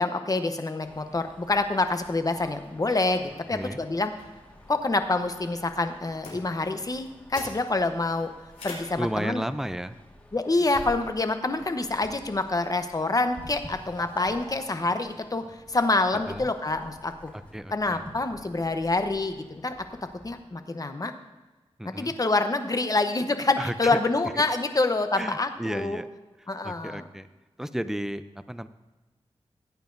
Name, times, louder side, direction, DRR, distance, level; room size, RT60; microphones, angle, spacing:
voice 1, 0.0-4.1 4.7-8.3 8.6-9.4 10.3-17.3 17.7-19.7 20.2-21.1 21.8-26.0 26.5-27.0, left 2 dB, 35° left, 8 dB, 0.9 m, -27 dB
sound 1, 0.8-20.3, left 1 dB, 10° left, 1.8 m, -48 dB
sound 2, 4.4-15.2, left 2 dB, 90° left, 3.4 m, -49 dB
voice 2, 9.0-9.9 16.1-16.5 17.5-18.0 21.8-22.2 23.6-24.0 24.3-24.4 25.1-26.1 26.4-27.3 27.6-28.7, right 1 dB, 5° right, 12 dB, 0.5 m, -33 dB
16.5 x 9.1 x 2.7 m, 1.2 s
wide cardioid pair, 65°, 11 cm